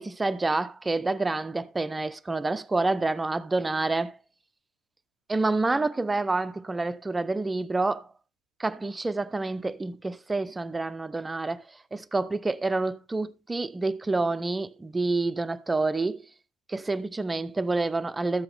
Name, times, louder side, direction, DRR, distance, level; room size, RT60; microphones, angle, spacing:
voice 1, 0.0-4.2 5.3-8.1 8.6-11.6 11.9-16.2 16.7-18.4, right 3 dB, 15° right, 0.8 m, -28 dB
14.0 x 8.0 x 3.4 m
supercardioid pair, 95°, 0 cm